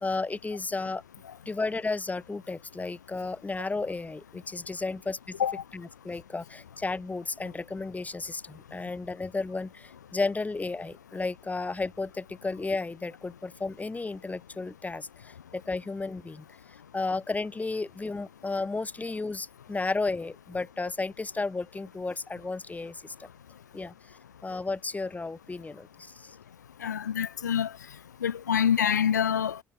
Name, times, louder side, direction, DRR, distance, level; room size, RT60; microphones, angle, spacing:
voice 1, 0.0-1.0 1.4-5.4 5.7-16.4 16.9-23.3 23.7-23.9 24.4-26.4, left 3 dB, 15° left, 1.2 m, -33 dB
voice 2, 26.8-27.7 28.2-29.6, left 8 dB, 80° left, 0.7 m, -26 dB
figure-of-eight pair, 55°, 9 cm